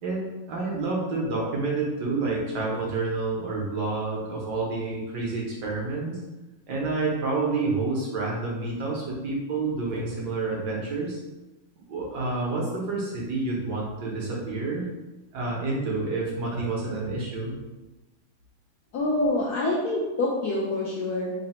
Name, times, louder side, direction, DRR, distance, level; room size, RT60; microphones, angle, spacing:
voice 1, 0.0-6.2 6.7-11.2 11.9-14.9 15.3-17.5, right 3 dB, 65° right, -3 dB, 1.1 m, -29 dB
voice 2, 18.9-21.3, left 2 dB, 75° left, -4 dB, 0.9 m, -26 dB
3.9 x 2.0 x 4.1 m, 1.1 s
omnidirectional pair, 2.2 m